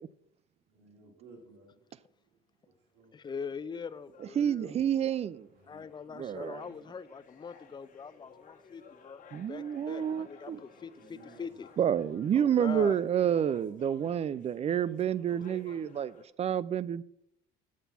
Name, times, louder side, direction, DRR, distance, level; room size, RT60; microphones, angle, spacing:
voice 1, 0.7-1.8 2.9-3.1 5.5-5.9 10.8-11.6, right 3 dB, 80° right, 2.1 m, -56 dB
voice 2, 3.1-4.7 5.7-9.2 9.5-11.7 12.3-13.0, left 6 dB, 25° left, 0.5 m, -42 dB
sound 1, 3.8-16.2, left 6 dB, 50° left, 1.5 m, -57 dB
voice 3, 4.4-5.5 6.1-6.6 9.3-10.6 11.8-17.0, right 9 dB, 40° right, 0.4 m, -29 dB
8.1 x 7.4 x 5.8 m
cardioid pair, 110°, 17 cm